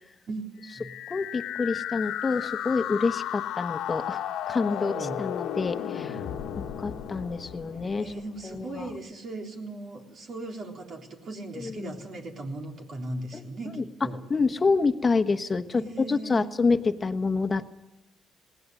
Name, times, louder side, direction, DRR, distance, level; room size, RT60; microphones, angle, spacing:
voice 1, 0.3-0.9 4.6-5.2 8.0-14.2 15.7-16.6, right 2 dB, 60° right, 2 dB, 3.7 m, -38 dB
sound 1, 0.7-8.6, left 10 dB, 90° left, 1.5 m, -34 dB
voice 2, 1.1-4.2 4.5-6.2 6.6-8.1 8.4-8.9 11.5-12.0 13.3-13.8 14.3-17.8, left 4 dB, 30° left, 7 dB, 1.2 m, -27 dB
20.5 x 17.5 x 9.5 m, 0.97 s
cardioid pair, 90°, 0 cm